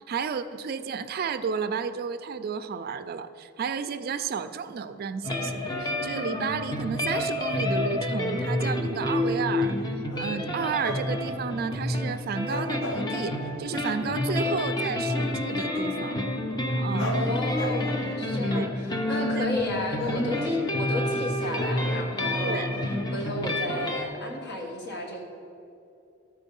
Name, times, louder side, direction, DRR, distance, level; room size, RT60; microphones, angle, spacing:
voice 1, 0.1-16.3 16.8-17.1 18.5-18.7 19.2-19.5 22.4-22.7, right 6 dB, 50° right, 11 dB, 0.3 m, -32 dB
sound 1, 5.2-24.0, left 1 dB, 20° left, 0.7 m, -29 dB
sound 2, 8.4-8.5 9.7-10.4 10.8-11.3 11.7-11.8 12.5-13.6 17.0-19.0 20.0-21.2, left 1 dB, 80° left, 0.9 m, -38 dB
voice 2, 17.1-22.6 23.1-25.2, left 1 dB, 60° left, 1 dB, 1.4 m, -33 dB
13.0 x 4.4 x 5.3 m, 2.8 s
head